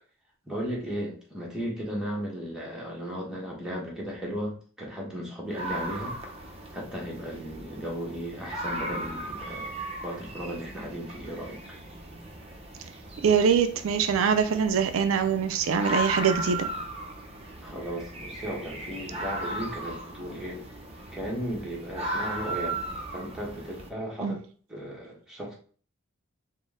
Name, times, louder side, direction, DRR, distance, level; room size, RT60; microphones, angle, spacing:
voice 1, 0.4-6.2 6.7-9.7 10.0-11.6 17.6-20.6 21.1-22.8 23.1-24.4 24.7-25.5, equal, 5° right, -4 dB, 1.2 m, -35 dB
sound 1, 5.5-23.9, right 1 dB, 30° right, 0.7 m, -37 dB
voice 2, 13.2-16.7 24.2-24.3, right 6 dB, 80° right, 8 dB, 0.4 m, -23 dB
4.0 x 2.1 x 3.6 m, 0.41 s
head